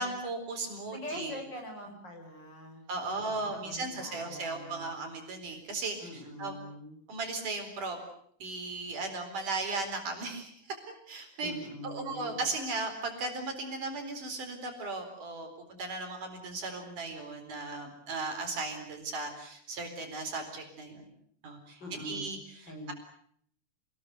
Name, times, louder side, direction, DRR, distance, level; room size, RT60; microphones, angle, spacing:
voice 1, 0.0-1.4 2.9-6.6 7.1-8.0 8.4-10.8 11.1-11.5 11.8-15.5 15.8-21.1 21.4-22.9, right 3 dB, 70° right, 4 dB, 5.7 m, -36 dB
voice 2, 0.9-4.9 6.0-7.0 11.4-12.4 21.8-22.3 22.7-22.9, left 1 dB, 30° left, 3 dB, 7.3 m, -44 dB
27.5 x 21.0 x 8.1 m, 0.64 s
omnidirectional pair, 3.8 m